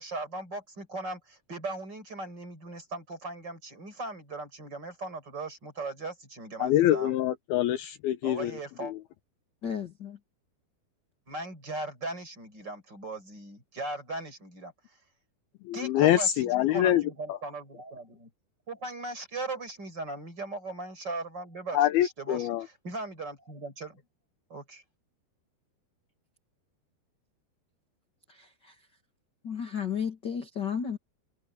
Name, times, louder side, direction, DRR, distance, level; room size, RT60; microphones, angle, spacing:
voice 1, 0.0-7.2 8.2-8.9 11.3-15.0 15.7-18.3 18.7-24.0 24.5-24.8, right 2 dB, 25° right, 5.8 m, -38 dB
voice 2, 6.6-8.5 8.8-9.0 15.6-17.0 17.3-17.4 21.7-22.7, left 12 dB, 75° left, 2.5 m, -25 dB
voice 3, 9.6-10.2 28.3-28.9 29.4-31.0, left 7 dB, 35° left, 1.9 m, -34 dB
omnidirectional pair, 4.8 m